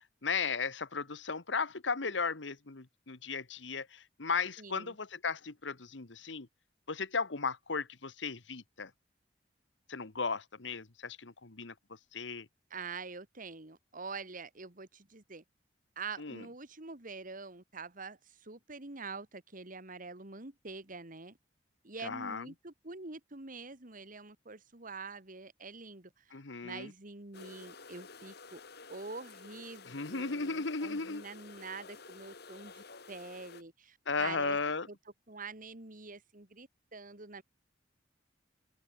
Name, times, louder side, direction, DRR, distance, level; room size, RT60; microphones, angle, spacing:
voice 1, 0.2-6.5 6.9-8.9 9.9-11.7 12.1-12.5 16.2-16.4 22.0-22.4 26.3-26.9 29.9-31.2 34.1-34.9, left 4 dB, 75° left, 1.4 m, -35 dB
voice 2, 4.6-5.0 12.7-15.4 16.0-21.4 21.8-26.1 26.6-28.6 28.9-34.6 34.9-35.0 35.3-37.4, right 4 dB, 45° right, 2.2 m, -45 dB
sound 1, 27.3-33.6, left 4 dB, 60° left, 3.2 m, -52 dB
open air
head